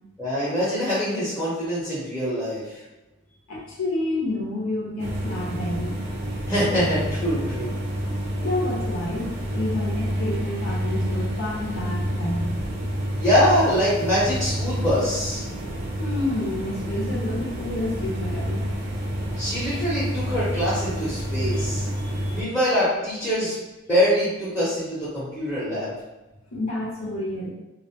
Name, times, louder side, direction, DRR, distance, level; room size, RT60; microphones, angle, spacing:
voice 1, 0.2-2.8 6.5-7.7 13.2-15.4 19.4-21.9 22.3-23.6 23.9-25.9, equal, 10° left, -11 dB, 0.7 m, -24 dB
voice 2, 3.5-6.1 8.4-12.5 16.0-18.7 21.5-21.6 22.0-22.4 26.5-27.5, left 1 dB, 80° left, -5 dB, 0.6 m, -29 dB
sound 1, 5.0-22.4, equal, 50° right, 0.5 m, -28 dB
2.3 x 2.1 x 2.7 m, 1.0 s
head